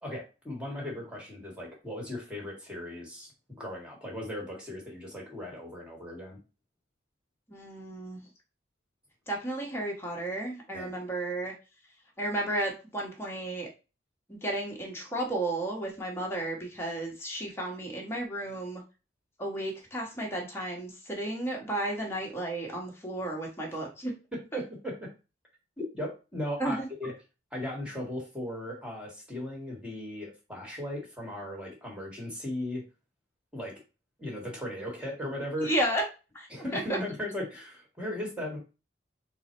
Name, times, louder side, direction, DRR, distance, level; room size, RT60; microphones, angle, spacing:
voice 1, 0.0-3.3 3.6-6.4 10.7-10.9 24.3-25.1 25.8-27.1 27.5-32.8 33.5-33.7 34.2-35.7 36.5-38.6, left 1 dB, 5° right, -2 dB, 1.3 m, -37 dB
voice 2, 7.5-8.3 9.3-11.5 12.2-13.7 14.3-18.8 19.4-24.1 26.6-26.9 35.6-36.0 36.3-36.5 36.7-37.0, right 1 dB, 10° left, -1 dB, 1.1 m, -33 dB
3.8 x 2.1 x 4.3 m, 0.30 s
head